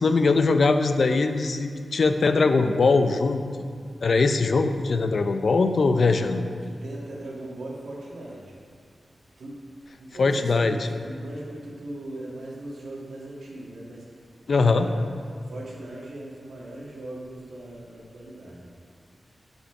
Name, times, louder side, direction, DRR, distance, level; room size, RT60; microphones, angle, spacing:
voice 1, 0.0-3.4 4.0-6.4 10.2-10.8 14.5-14.9, left 3 dB, 55° left, 8 dB, 0.5 m, -21 dB
voice 2, 6.0-8.6 9.4-9.6 10.0-14.0 14.7-15.0 15.5-18.7, right 1 dB, 85° right, -4 dB, 1.9 m, -39 dB
8.6 x 5.6 x 5.8 m, 2.1 s
wide cardioid pair, 165°, 0 cm